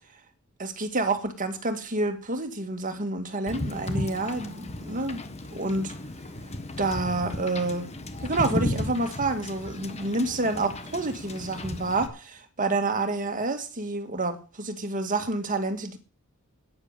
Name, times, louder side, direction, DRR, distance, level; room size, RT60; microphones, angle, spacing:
voice 1, 0.6-5.2 5.5-5.9 6.8-7.9 8.2-16.0, right 2 dB, 40° right, 2.0 m, -28 dB
Wind / Boat Water vehicle, 3.5-12.1, left 1 dB, 30° left, 1.3 m, -34 dB
10.5 x 9.8 x 6.8 m
head